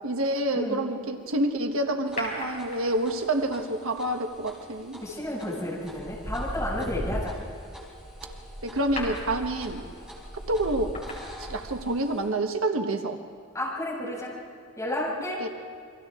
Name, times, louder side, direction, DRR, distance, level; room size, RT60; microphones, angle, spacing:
voice 1, 0.0-5.0 8.6-9.9 10.5-11.0 11.4-13.2 15.4-15.5, right 1 dB, 75° right, 5 dB, 1.3 m, -28 dB
sound 1, 2.1-12.3, equal, 5° right, 4.9 m, -48 dB
sound 2, 2.2-3.2 5.1-5.3 5.8-12.0 12.3-12.4, left 1 dB, 35° left, 5.5 m, -37 dB
voice 2, 5.0-7.3 13.5-14.3 14.8-15.4, left 1 dB, 15° left, -6 dB, 6.2 m, -31 dB
29.5 x 24.0 x 3.7 m, 2.2 s
head